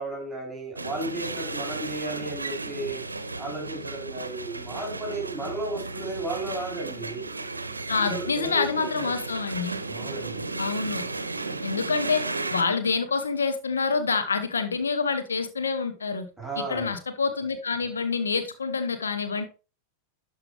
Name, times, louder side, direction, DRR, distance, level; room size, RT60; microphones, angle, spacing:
voice 1, 0.0-3.0 3.4-7.3 8.0-9.1 9.9-10.4 16.4-17.0, right 2 dB, 5° right, 4.1 m, -34 dB
sound 1, 0.8-12.6, right 3 dB, 80° right, 0.7 m, -34 dB
voice 2, 7.9-9.8 10.6-11.0 11.6-16.3 16.7-19.4, left 5 dB, 70° left, 0.9 m, -27 dB
11.5 x 5.3 x 3.4 m
figure-of-eight pair, 90°, 0 cm